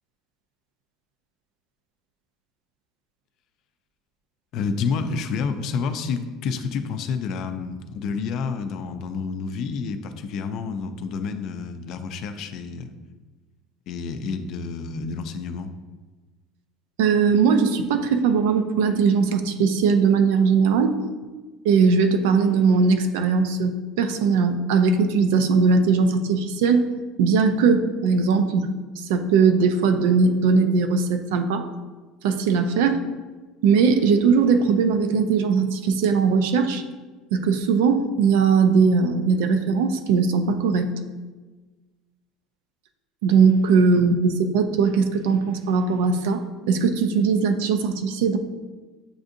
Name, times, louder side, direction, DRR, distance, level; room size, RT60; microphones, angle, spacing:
voice 1, 4.5-12.9 13.9-15.7, left 5 dB, 55° left, 8 dB, 0.4 m, -29 dB
voice 2, 17.0-21.0 21.6-26.9 27.2-31.7 32.2-33.0 33.6-36.8 37.3-40.9 43.2-48.4, right 5 dB, 90° right, 8 dB, 0.4 m, -20 dB
7.7 x 2.6 x 2.5 m, 1.3 s
cardioid pair, 135°, 0 cm